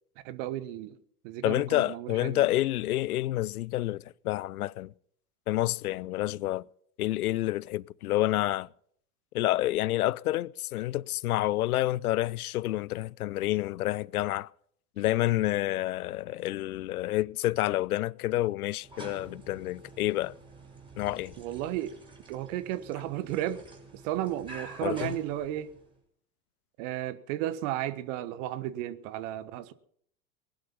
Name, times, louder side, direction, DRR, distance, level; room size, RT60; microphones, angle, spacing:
voice 1, 0.2-1.0 1.2-2.5 21.4-21.9 22.3-23.6 23.9-25.7 26.8-29.7, right 13 dB, 55° right, 1.3 m, -34 dB
voice 2, 1.4-4.9 5.5-6.6 7.0-8.7 9.3-14.5 15.0-20.3 21.0-21.3 24.8-25.1, left 16 dB, 75° left, 0.6 m, -29 dB
sound 1, 18.8-26.0, right 2 dB, 10° right, 5.8 m, -49 dB
20.0 x 12.0 x 5.7 m
figure-of-eight pair, 80°, 44 cm